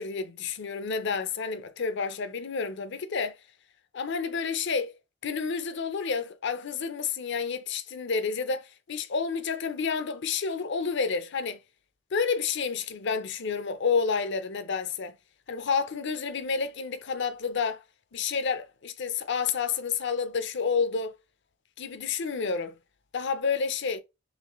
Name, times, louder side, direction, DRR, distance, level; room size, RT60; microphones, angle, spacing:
voice 1, 0.0-3.4 3.9-4.9 5.2-11.6 12.1-15.2 15.5-17.8 18.1-21.1 21.8-22.7 23.1-24.0, left 5 dB, 60° left, 0.6 m, -30 dB
4.1 x 3.2 x 3.0 m
head